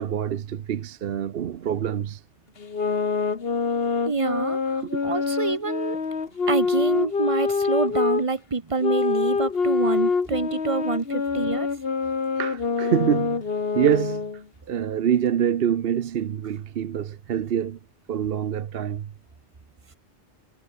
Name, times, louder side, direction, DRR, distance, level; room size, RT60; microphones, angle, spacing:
voice 1, 0.0-2.2 4.8-5.0 12.4-13.4 13.7-17.8 18.1-19.1, right 9 dB, 60° right, 0.9 m, -26 dB
sound 1, 2.6-8.2 8.8-14.4, left 5 dB, 60° left, 1.8 m, -25 dB
voice 2, 4.1-4.6 5.0-6.0 6.5-11.7, right 4 dB, 30° right, 1.2 m, -26 dB
omnidirectional pair, 1.2 m